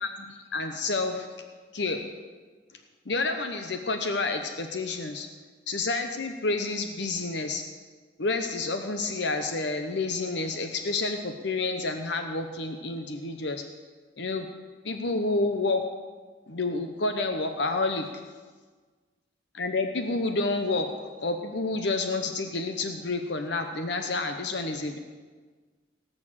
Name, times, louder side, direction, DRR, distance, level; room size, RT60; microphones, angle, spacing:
voice 1, 0.0-1.3 1.7-2.1 3.1-5.3 5.7-7.6 8.2-13.6 14.2-14.5 14.8-15.8 16.5-18.1 19.5-20.9 21.2-25.0, left 3 dB, 65° left, 6 dB, 0.9 m, -29 dB
18.0 x 6.6 x 7.4 m, 1.4 s
head